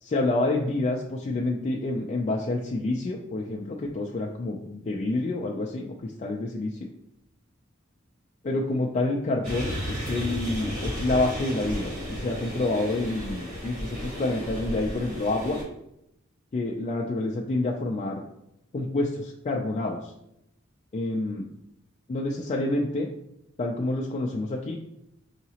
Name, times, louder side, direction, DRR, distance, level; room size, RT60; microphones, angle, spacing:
voice 1, 0.0-6.9 8.4-15.6 16.5-18.2 18.7-20.1 20.9-21.5 22.1-23.1 23.6-24.8, left 2 dB, 35° left, -1 dB, 0.3 m, -28 dB
sound 1, 9.4-15.6, equal, 40° right, 1.5 m, -33 dB
4.7 x 2.8 x 2.8 m, 0.81 s
head